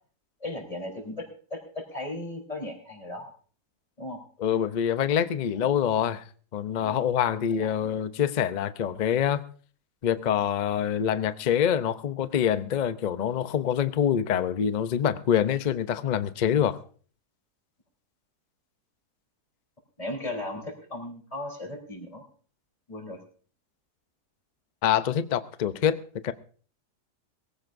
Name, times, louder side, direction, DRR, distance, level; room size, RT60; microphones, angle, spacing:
voice 1, 0.4-3.3 4.0-4.2 5.5-5.7 7.5-7.9 20.0-22.2 22.9-23.2, left 1 dB, 20° left, 1 dB, 3.7 m, -37 dB
voice 2, 4.4-6.2 6.5-9.4 10.0-16.8 24.8-26.3, left 9 dB, 65° left, 12 dB, 0.4 m, -25 dB
22.5 x 15.5 x 2.6 m, 0.43 s
omnidirectional pair, 1.7 m